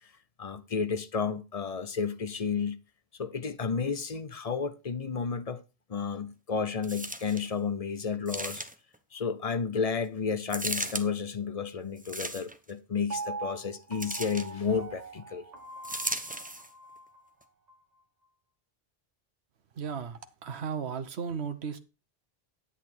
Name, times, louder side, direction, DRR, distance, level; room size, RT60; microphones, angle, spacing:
voice 1, 0.4-2.8 3.2-5.6 5.9-8.6 9.1-15.5, left 5 dB, 40° left, 0.8 m, -32 dB
sound 1, 6.8-7.5 8.3-9.0 10.5-11.1 12.0-12.7 14.0-14.5 15.8-16.7 17.4-17.5, right 1 dB, 10° right, 0.8 m, -36 dB
Piano, 13.1-17.2 17.7-17.8, right 4 dB, 40° right, 1.2 m, -41 dB
voice 2, 19.7-21.8, right 6 dB, 90° right, 1.1 m, -35 dB
10.0 x 8.4 x 4.4 m
omnidirectional pair, 1.1 m